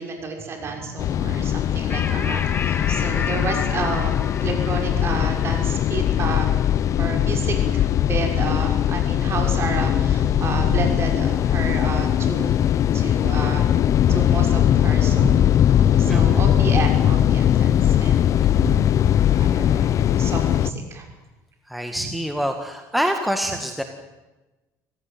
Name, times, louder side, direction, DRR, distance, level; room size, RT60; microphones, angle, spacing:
voice 1, 0.0-6.5 7.0-13.7 14.1-15.4 16.0-18.8 19.2-21.1 22.0-22.1, right 4 dB, 35° right, 3 dB, 6.3 m, -30 dB
sound 1, 1.0-20.7, left 10 dB, 45° left, 0.8 m, -20 dB
sound 2, 1.9-8.8, left 5 dB, 30° left, 2.2 m, -34 dB
voice 2, 16.1-16.5 21.7-23.8, equal, ahead, 5 dB, 1.8 m, -26 dB
26.5 x 17.0 x 9.4 m, 1.1 s
cardioid pair, 125°, 7 cm